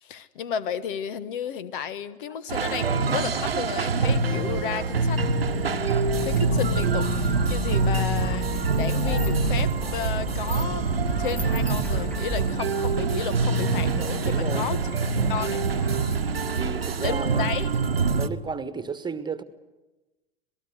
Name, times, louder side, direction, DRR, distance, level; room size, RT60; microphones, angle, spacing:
voice 1, 0.0-10.9 11.2-14.8 15.3-15.6 17.0-17.7, left 7 dB, 60° left, 17 dB, 1.3 m, -33 dB
sound 1, 1.4-3.0 3.8-3.9 4.2-4.3 4.6-4.7 5.1-5.2 5.7-17.5 17.8-18.2, left 2 dB, 85° left, 2.6 m, -47 dB
sound 2, 2.5-18.3, right 4 dB, 85° right, 1.1 m, -25 dB
sound 3, 6.1-12.5, equal, 5° left, 1.0 m, -34 dB
voice 2, 14.2-14.7 16.5-17.4 18.1-19.4, right 5 dB, 15° right, 12 dB, 1.5 m, -33 dB
26.5 x 19.0 x 8.2 m, 1.1 s
figure-of-eight pair, 85°, 29 cm